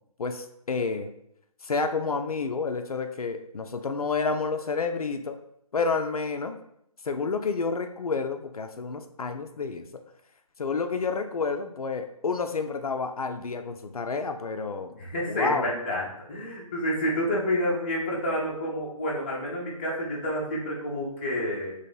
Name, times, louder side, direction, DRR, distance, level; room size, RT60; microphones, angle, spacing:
voice 1, 0.2-1.1 1.6-5.4 5.7-6.6 7.0-9.9 10.6-15.0 15.3-15.7, left 4 dB, 75° left, 6 dB, 0.4 m, -29 dB
voice 2, 15.0-21.7, equal, 20° left, -4 dB, 0.5 m, -29 dB
3.0 x 2.8 x 3.8 m, 0.76 s
figure-of-eight pair, 150°, 19 cm